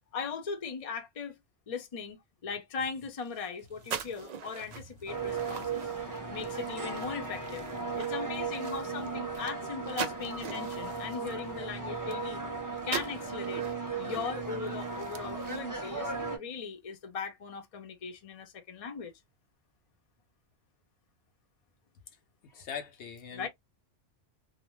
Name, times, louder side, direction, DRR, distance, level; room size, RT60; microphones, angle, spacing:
voice 1, 0.1-1.4 1.7-5.9 6.3-7.6 8.0-12.4 12.8-13.6 14.0-19.1 23.3-23.5, left 5 dB, 40° left, 0.6 m, -39 dB
sound 1, 3.1-12.5 12.8-16.0, right 7 dB, 80° right, 0.3 m, -43 dB
sound 2, 5.1-16.4, right 4 dB, 20° right, 0.6 m, -36 dB
voice 2, 22.4-23.5, left 7 dB, 70° left, 0.9 m, -42 dB
2.5 x 2.1 x 3.0 m
omnidirectional pair, 1.3 m